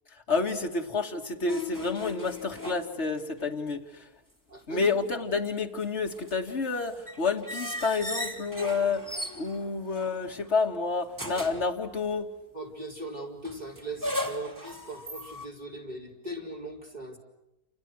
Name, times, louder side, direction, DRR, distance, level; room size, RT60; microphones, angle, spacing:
voice 1, 0.3-4.1 4.7-9.1 9.3-12.3, left 4 dB, 45° left, 3 dB, 2.5 m, -29 dB
sound 1, 1.5-3.4 3.7-3.8 5.2-10.6 11.1-11.7 13.4-15.5, left 1 dB, 10° right, 3.3 m, -37 dB
voice 2, 4.5-4.9 12.5-17.2, right 2 dB, 25° right, 0 dB, 5.2 m, -39 dB
28.5 x 28.5 x 6.4 m, 0.91 s
omnidirectional pair, 1.6 m